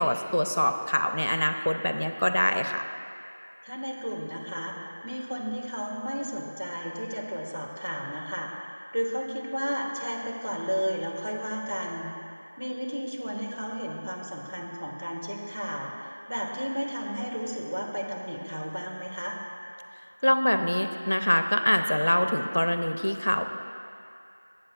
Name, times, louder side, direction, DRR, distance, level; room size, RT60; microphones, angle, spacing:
voice 1, 0.0-2.8 20.2-23.5, equal, 65° left, 7 dB, 0.5 m, -25 dB
voice 2, 3.6-4.8 5.0-12.1 12.6-19.4, equal, 85° right, -2 dB, 1.7 m, -33 dB
18.5 x 7.6 x 2.4 m, 2.6 s
figure-of-eight pair, 180°, 0 cm